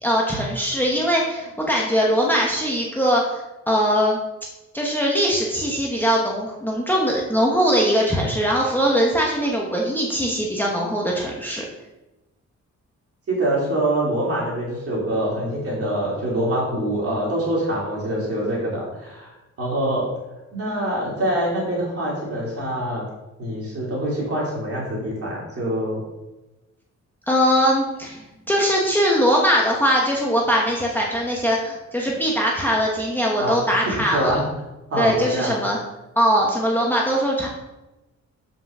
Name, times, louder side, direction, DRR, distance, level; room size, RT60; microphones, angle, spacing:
voice 1, 0.0-4.2 4.7-11.6 27.3-34.4 35.0-35.8 36.2-37.5, equal, 5° left, -3 dB, 0.9 m, -21 dB
voice 2, 13.3-19.3 19.6-20.1 20.5-23.0 23.4-26.0 33.4-33.6 34.1-34.4 34.9-35.5, right 1 dB, 50° right, -4 dB, 2.9 m, -24 dB
5.6 x 5.3 x 6.5 m, 1.0 s
wide cardioid pair, 180°, 29 cm